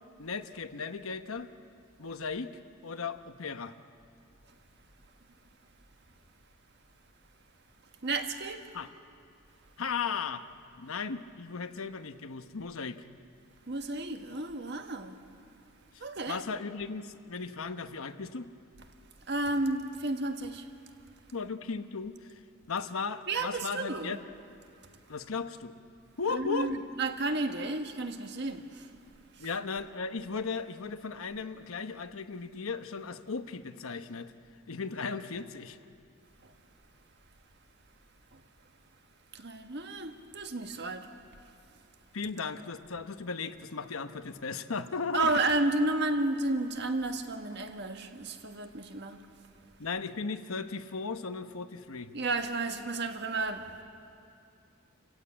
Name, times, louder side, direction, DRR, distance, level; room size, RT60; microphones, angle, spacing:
voice 1, 0.2-1.5 2.0-3.8 8.7-8.9 9.8-10.5 10.8-13.0 15.9-18.5 21.3-22.4 22.7-24.2 25.1-25.8 26.2-26.7 29.4-34.3 34.7-35.8 42.1-45.4 49.8-52.2, left 5 dB, 90° left, 1.0 m, -36 dB
voice 2, 8.0-8.7 13.7-15.2 16.0-16.4 19.3-20.7 23.3-24.2 26.3-28.9 29.3-29.5 36.4-36.5 38.3-38.4 39.3-41.1 45.1-49.2 52.1-53.8, right 2 dB, 55° right, 1.5 m, -32 dB
29.5 x 15.5 x 8.8 m
head